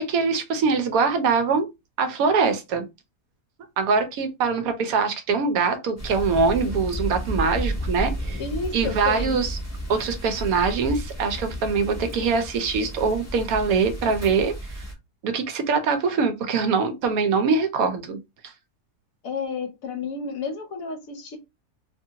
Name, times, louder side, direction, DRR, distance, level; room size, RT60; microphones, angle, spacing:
voice 1, 0.0-1.7 2.0-2.9 3.8-8.4 8.7-9.6 9.9-14.8 15.2-18.2, right 5 dB, 70° right, 1.0 m, -23 dB
sound 1, 6.0-14.9, right 1 dB, 15° left, 0.6 m, -32 dB
voice 2, 8.4-9.4 19.2-21.4, left 4 dB, 65° left, 1.0 m, -31 dB
2.8 x 2.5 x 2.7 m
omnidirectional pair, 1.7 m